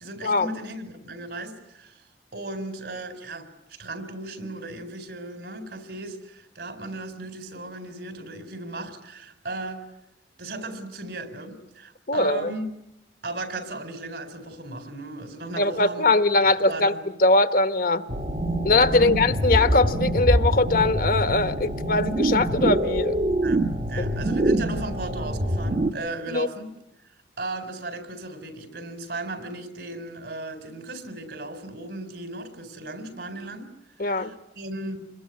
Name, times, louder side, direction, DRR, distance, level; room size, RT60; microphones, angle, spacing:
voice 1, 0.0-2.0 2.3-9.8 10.4-12.7 13.2-16.1 16.6-17.0 18.9-19.1 23.4-23.6 23.9-26.7 27.4-33.7 34.0-35.0, right 2 dB, 70° right, 9 dB, 4.5 m, -36 dB
voice 2, 12.1-12.5 15.6-16.9 17.2-18.0 18.6-23.2 26.3-26.5 34.0-34.4, left 2 dB, 55° left, 11 dB, 1.2 m, -21 dB
sound 1, 18.1-25.9, right 1 dB, 40° right, 1.3 m, -25 dB
28.0 x 22.5 x 9.6 m, 0.84 s
head